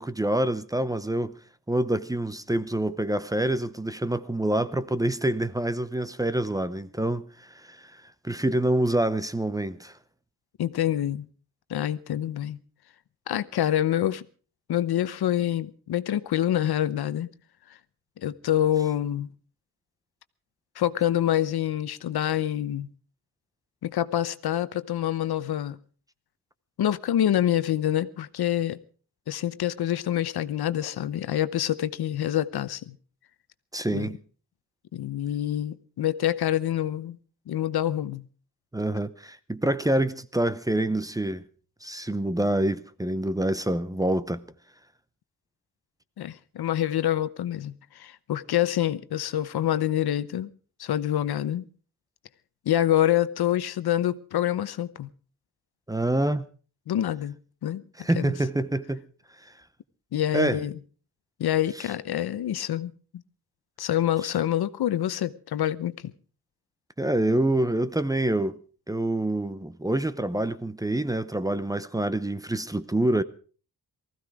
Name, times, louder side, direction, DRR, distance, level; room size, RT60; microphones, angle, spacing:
voice 1, 0.0-1.4 1.7-10.0 33.7-34.2 38.7-41.4 41.8-44.4 55.9-56.5 58.0-59.1 59.4-59.5 60.3-60.6 67.0-68.6 68.9-73.2, right 1 dB, 10° right, 0.7 m, -26 dB
voice 2, 10.6-11.3 11.7-12.6 13.3-14.2 14.7-17.3 18.2-19.3 20.8-22.9 23.8-25.8 26.8-28.8 29.3-33.0 33.9-34.1 34.9-37.2 37.5-38.2 46.2-50.5 50.8-51.6 52.7-55.1 56.9-57.3 57.6-57.8 58.1-58.3 60.1-60.7 61.4-62.9 63.8-66.1, left 11 dB, 80° left, 0.9 m, -26 dB
19.5 x 15.0 x 4.8 m
wide cardioid pair, 120°, 38 cm